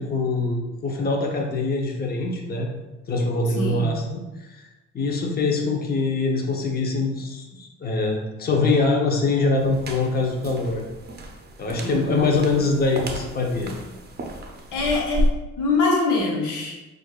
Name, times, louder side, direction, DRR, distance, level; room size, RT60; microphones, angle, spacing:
voice 1, 0.0-2.7 3.1-4.7 4.9-10.8 11.6-13.7, left 3 dB, 30° left, 0 dB, 0.7 m, -24 dB
voice 2, 3.6-3.9 11.8-12.5 14.7-15.2 15.6-16.7, left 3 dB, 90° left, -2 dB, 1.1 m, -24 dB
sound 1, 9.6-15.3, equal, 35° right, 0.6 m, -31 dB
6.3 x 2.6 x 2.4 m, 1.0 s
cardioid pair, 90°, 30 cm